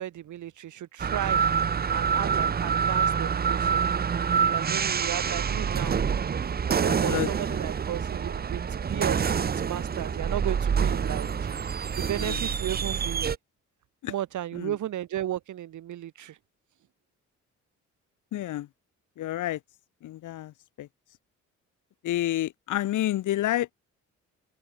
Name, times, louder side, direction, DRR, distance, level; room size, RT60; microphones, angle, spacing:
voice 1, 0.0-1.4 1.9-3.9 4.5-6.0 6.7-11.3 11.9-13.3 14.1-16.4, right 12 dB, 75° right, 7.8 m, -34 dB
sound 1, 1.0-13.4, right 7 dB, 30° right, 0.8 m, -26 dB
voice 2, 6.9-7.3 12.2-12.5 14.0-14.1 14.5-14.8 18.3-18.7 19.2-19.6 20.0-20.9 22.0-23.7, left 14 dB, 80° left, 3.5 m, -29 dB
open air
cardioid pair, 90°, 30 cm